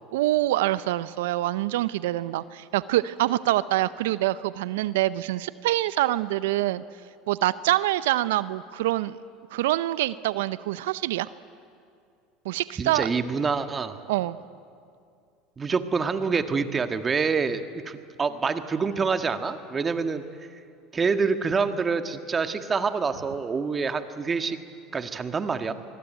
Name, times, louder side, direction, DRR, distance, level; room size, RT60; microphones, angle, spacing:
voice 1, 0.1-6.8 7.3-9.2 9.5-11.3 12.4-13.1 14.1-14.4, right 15 dB, 80° right, 16 dB, 0.6 m, -25 dB
voice 2, 12.8-14.0 15.6-20.2 20.9-24.6 24.9-25.7, right 5 dB, 25° right, 8 dB, 1.7 m, -26 dB
24.5 x 21.5 x 9.2 m, 2.4 s
hypercardioid pair, 85°, 0 cm